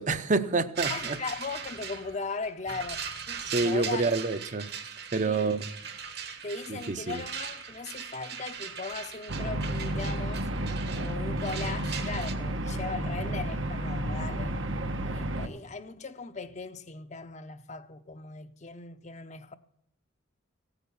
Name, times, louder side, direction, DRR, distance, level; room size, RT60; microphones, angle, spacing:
voice 1, 0.0-1.2 3.4-4.7 5.1-5.7 6.7-7.2, right 3 dB, 40° right, 0.7 m, -28 dB
sound 1, 0.8-12.3, right 7 dB, 55° right, 1.4 m, -39 dB
voice 2, 0.9-4.1 5.2-5.7 6.4-10.5 11.0-14.6 15.1-19.6, left 4 dB, 35° left, 0.7 m, -38 dB
sound 2, 9.3-15.5, right 1 dB, 75° right, 1.2 m, -31 dB
16.0 x 9.1 x 7.0 m
head